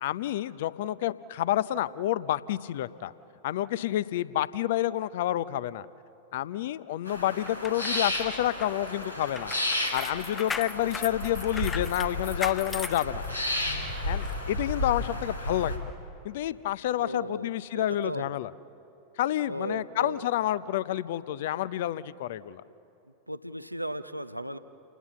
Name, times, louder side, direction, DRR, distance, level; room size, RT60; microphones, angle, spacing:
voice 1, 0.0-3.1 3.4-5.9 6.3-9.5 9.9-13.2 14.1-15.7 16.2-18.5 19.2-22.6, left 13 dB, 55° left, 18 dB, 0.6 m, -29 dB
sound 1, 7.1-15.8, left 1 dB, 90° left, 3.2 m, -33 dB
sound 2, 7.5-13.7 14.2-14.4, left 5 dB, 15° left, 0.7 m, -39 dB
voice 2, 17.0-18.3 19.5-20.2 23.3-24.6, right 1 dB, 90° right, 12 dB, 0.7 m, -36 dB
30.0 x 19.5 x 7.4 m, 2.8 s
figure-of-eight pair, 90°, 0 cm